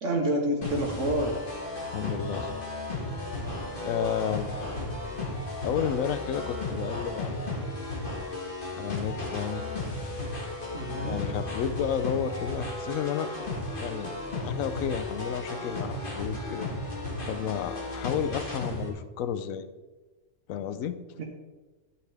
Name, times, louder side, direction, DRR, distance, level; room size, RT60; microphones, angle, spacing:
voice 1, 0.0-1.4 10.7-11.2 21.2-21.3, right 1 dB, 65° right, 1 dB, 1.4 m, -28 dB
sound 1, 0.6-18.9, left 2 dB, 40° left, 2.0 m, -34 dB
voice 2, 1.9-2.6 3.8-4.6 5.6-7.4 8.7-9.6 11.0-13.3 13.8-14.1 14.4-16.7 17.3-19.7 20.5-21.0, left 8 dB, 85° left, 12 dB, 1.0 m, -31 dB
11.5 x 8.6 x 3.4 m, 1.2 s
omnidirectional pair, 1.4 m